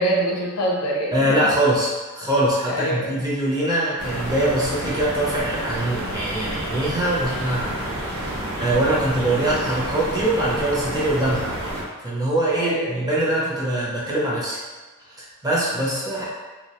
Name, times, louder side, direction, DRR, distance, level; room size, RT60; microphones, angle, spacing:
voice 1, 0.0-1.4 2.7-3.2 12.5-13.0, right 1 dB, 80° left, -3 dB, 0.6 m, -24 dB
voice 2, 1.1-7.8 8.3-11.5 12.0-14.6 15.1-16.2, right 1 dB, 20° right, -6 dB, 0.5 m, -23 dB
sound 1, 4.0-11.8, right 1 dB, 80° right, 0.5 m, -29 dB
2.3 x 2.0 x 2.8 m, 1.3 s
head